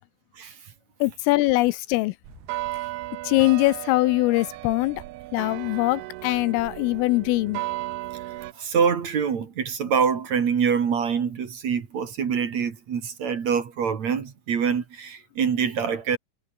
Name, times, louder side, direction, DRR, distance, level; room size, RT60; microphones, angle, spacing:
voice 1, 1.0-2.1 3.2-5.0 5.3-7.6, left 20 dB, 85° left, 3.4 m, -22 dB
sound 1, 2.2-8.5, right 17 dB, 80° right, 2.3 m, -35 dB
voice 2, 8.5-16.2, right 6 dB, 45° right, 2.7 m, -25 dB
omnidirectional pair, 5.8 m